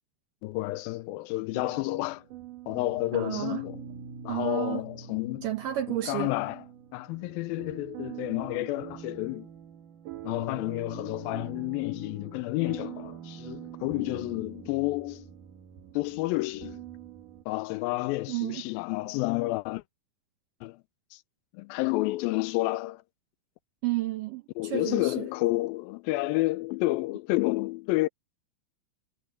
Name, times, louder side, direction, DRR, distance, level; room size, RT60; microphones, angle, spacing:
voice 1, 0.4-2.2 2.7-3.8 4.2-5.5 5.9-6.7 6.9-9.5 10.2-15.3 15.9-16.8 17.5-19.8 20.6-20.8 21.1-21.2 21.5-23.0 24.6-28.1, left 20 dB, 90° left, 2.0 m, -30 dB
sound 1, 1.5-17.4, right 9 dB, 60° right, 3.0 m, -45 dB
voice 2, 3.1-3.6 4.3-4.8 5.4-6.3 17.8-17.9 18.3-18.6 23.8-25.3, right 14 dB, 75° right, 2.0 m, -31 dB
omnidirectional pair, 4.8 m